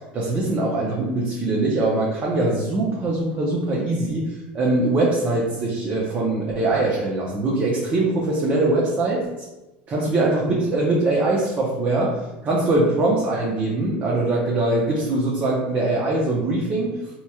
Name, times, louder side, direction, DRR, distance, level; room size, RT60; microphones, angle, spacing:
voice 1, 0.1-4.3 4.5-9.2 9.9-12.2 12.4-16.9, right 2 dB, 35° right, -4 dB, 0.7 m, -22 dB
4.1 x 3.0 x 2.3 m, 1.1 s
supercardioid pair, 105°, 5 cm